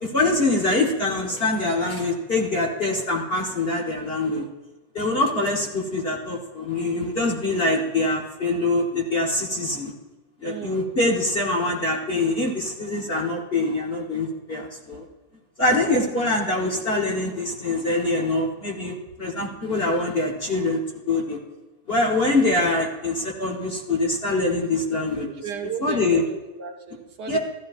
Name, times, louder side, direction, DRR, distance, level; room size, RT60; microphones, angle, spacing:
voice 1, 0.0-4.5 4.9-9.9 10.4-15.0 15.6-21.4 21.9-25.3 25.8-26.2 27.3-27.4, left 2 dB, 35° left, -1 dB, 1.2 m, -24 dB
voice 2, 10.4-10.9 15.7-16.1 25.4-27.4, right 7 dB, 65° right, 4 dB, 1.4 m, -35 dB
14.5 x 13.5 x 2.5 m, 1.2 s
omnidirectional pair, 2.0 m